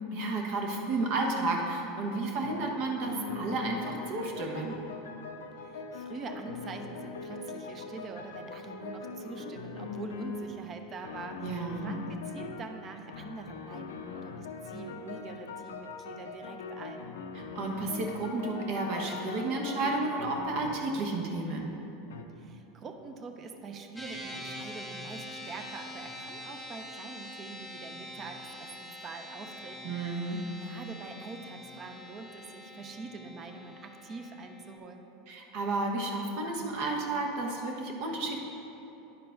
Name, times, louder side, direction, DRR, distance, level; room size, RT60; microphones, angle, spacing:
voice 1, 0.1-4.8 11.4-11.9 17.3-21.7 29.8-30.4 35.3-38.4, right 2 dB, 60° right, 1 dB, 1.2 m, -32 dB
sound 1, 2.4-2.8 3.0-10.6 11.0-12.7 13.1-21.0 22.1-22.2, left 4 dB, 85° left, 0.5 m, -41 dB
voice 2, 5.6-17.1 22.4-35.1, right 4 dB, 35° right, 5 dB, 0.7 m, -44 dB
sound 2, 24.0-34.8, left 1 dB, 5° right, 1.4 m, -45 dB
10.5 x 4.5 x 3.9 m, 3.0 s
hypercardioid pair, 100°, 0 cm